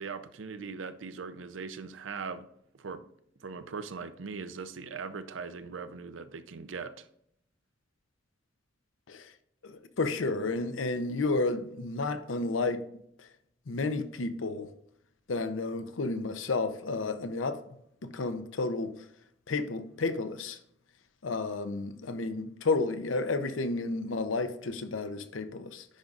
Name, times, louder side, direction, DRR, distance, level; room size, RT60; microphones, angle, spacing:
voice 1, 0.0-2.5 2.8-3.0 3.4-7.1, right 5 dB, 80° right, 0.6 m, -40 dB
voice 2, 9.6-12.8 13.2-13.3 13.7-14.7 15.3-17.6 18.1-18.9 19.5-20.6 21.2-25.9, left 3 dB, 90° left, 0.7 m, -31 dB
10.0 x 5.3 x 2.5 m
head